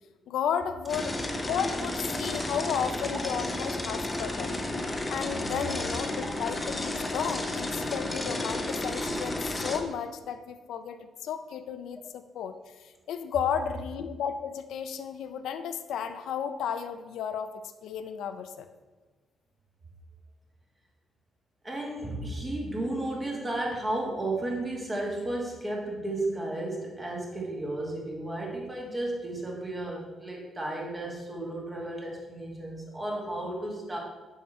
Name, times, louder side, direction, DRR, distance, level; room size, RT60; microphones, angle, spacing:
voice 1, 0.3-4.6 5.1-12.5 13.1-18.7, left 8 dB, 80° left, 9 dB, 0.5 m, -33 dB
sound 1, 0.9-9.8, left 1 dB, 15° left, 0.7 m, -32 dB
voice 2, 21.6-34.0, right 1 dB, 15° right, -1 dB, 1.5 m, -33 dB
7.3 x 5.6 x 4.3 m, 1.2 s
cardioid pair, 165°, 0 cm